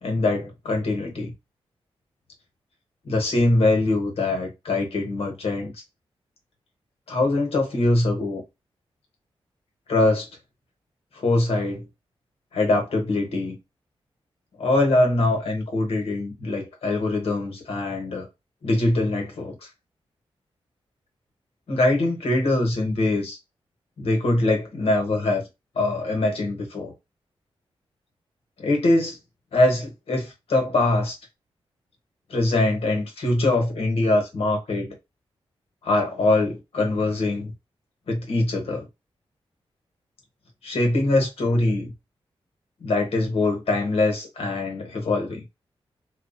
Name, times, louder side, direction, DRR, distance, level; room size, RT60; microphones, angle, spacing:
voice 1, 0.0-1.3 3.0-5.7 7.1-8.4 9.9-10.3 11.1-11.8 12.5-13.6 14.6-18.3 18.6-19.7 21.7-23.4 24.0-25.4 25.8-26.9 28.6-29.2 29.5-31.1 32.3-34.9 35.8-37.5 38.1-38.9 40.6-41.9 42.8-45.4, left 2 dB, 75° left, 1.0 m, -23 dB
2.3 x 2.1 x 2.5 m
wide cardioid pair, 135°, 10 cm